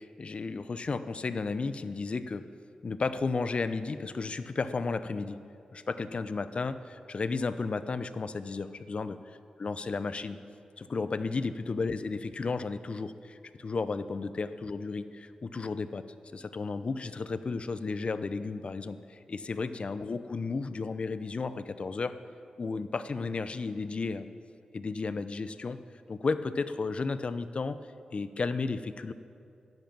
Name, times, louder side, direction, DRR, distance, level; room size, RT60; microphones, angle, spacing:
voice 1, 0.0-2.4 2.8-5.4 5.7-9.2 9.6-10.4 10.8-16.0 16.3-22.1 22.6-24.3 24.7-25.8 26.1-27.8 28.1-29.1, left 4 dB, 50° left, 12 dB, 0.8 m, -33 dB
12.5 x 10.5 x 8.9 m, 2.5 s
cardioid pair, 50°, 2 cm